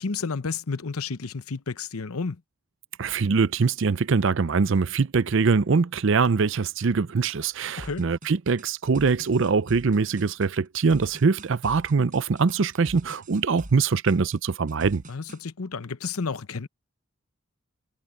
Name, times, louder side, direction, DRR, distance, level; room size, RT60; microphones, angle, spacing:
voice 1, 0.0-2.4 7.8-8.0 15.1-16.7, left 4 dB, 85° left, 0.9 m, -31 dB
voice 2, 3.0-15.0, right 5 dB, 60° right, 0.5 m, -23 dB
sound 1, 7.8-15.4, right 1 dB, 35° right, 7.8 m, -44 dB
head